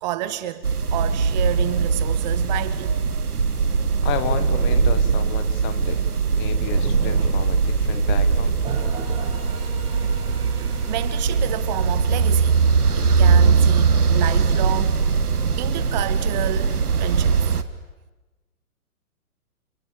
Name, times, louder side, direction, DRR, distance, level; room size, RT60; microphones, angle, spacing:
voice 1, 0.0-0.6 0.9-3.2 10.5-12.6 12.9-15.0 15.6-17.4, right 14 dB, 30° right, 0.9 m, -30 dB
sound 1, 0.6-17.6, right 5 dB, 80° right, 1.8 m, -20 dB
voice 2, 4.0-6.1 6.3-8.6, left 11 dB, 25° left, 1.6 m, -32 dB
sound 2, 8.6-14.6, right 4 dB, 10° right, 7.2 m, -40 dB
30.0 x 27.0 x 7.1 m
figure-of-eight pair, 125°, 44 cm